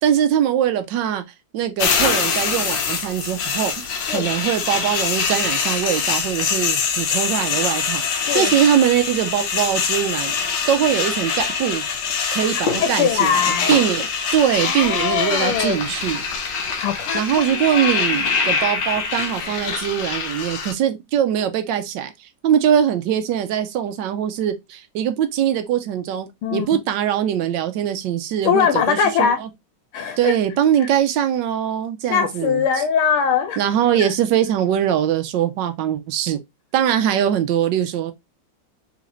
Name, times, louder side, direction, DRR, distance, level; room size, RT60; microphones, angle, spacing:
voice 1, 0.0-1.2 1.5-10.3 10.7-11.8 12.3-16.3 17.1-22.1 22.4-29.5 30.2-32.6 33.6-36.4 36.7-38.1, right 10 dB, 70° right, 1.1 m, -22 dB
sound 1, 1.8-20.7, left 6 dB, 65° left, 1.2 m, -24 dB
voice 2, 13.0-13.7 14.6-15.8 16.8-17.2 17.5-18.2 26.4-26.7 28.4-29.4 29.9-30.3 32.1-33.6 34.0-34.1, left 7 dB, 85° left, 1.6 m, -21 dB
3.8 x 3.2 x 2.9 m
omnidirectional pair, 2.3 m